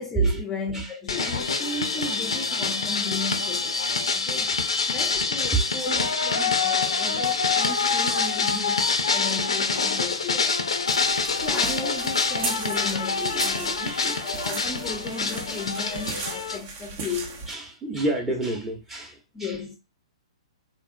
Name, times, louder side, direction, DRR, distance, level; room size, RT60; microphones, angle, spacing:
voice 1, 0.0-3.9 4.1-4.6 4.9-10.6 11.4-13.9 14.2-17.4 18.5-18.6 19.3-19.8, left 4 dB, 15° left, 0.6 m, -35 dB
sound 1, 1.1-16.6, left 4 dB, 70° left, 0.5 m, -26 dB
voice 2, 5.5-6.1 6.5-6.6 7.0-7.1 11.5-11.6 13.2-14.2 15.3-15.4 16.2-16.4 17.5-19.6, right 3 dB, 10° right, 0.9 m, -30 dB
sound 2, 10.9-17.5, right 4 dB, 35° right, 0.8 m, -36 dB
3.7 x 2.3 x 2.5 m
figure-of-eight pair, 115°, 3 cm